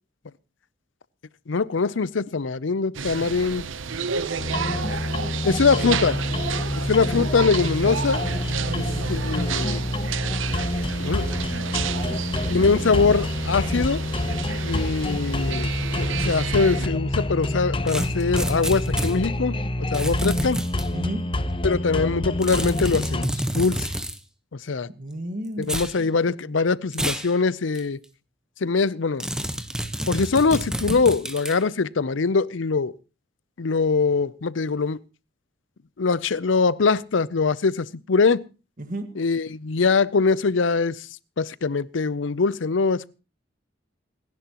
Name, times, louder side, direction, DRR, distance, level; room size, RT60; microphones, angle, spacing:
voice 1, 1.5-3.7 5.4-6.2 6.8-8.2 8.8-8.9 9.1-9.9 11.0-11.2 12.5-14.0 14.6-15.7 16.0-19.6 19.9-20.6 21.6-23.9 24.7-24.9 25.7-28.0 28.6-29.3 30.1-32.9 33.6-35.0 36.0-38.4 39.2-41.1 41.4-43.1, left 4 dB, 70° left, 0.6 m, -22 dB
sound 1, 2.9-16.9, right 6 dB, 80° right, 0.8 m, -31 dB
voice 2, 3.8-6.4 8.6-9.5 10.8-11.7 12.0-12.2 12.5-13.3 20.9-21.2 25.0-26.6 38.8-39.1, right 1 dB, 45° right, 1.8 m, -37 dB
sound 2, 4.4-23.3, left 1 dB, 25° left, 0.9 m, -27 dB
sound 3, 17.9-19.1 19.9-20.9 22.4-24.2 25.6-25.9 26.9-27.3 27.7-27.8 29.2-31.6, equal, 5° right, 1.1 m, -29 dB
27.5 x 10.5 x 3.0 m
head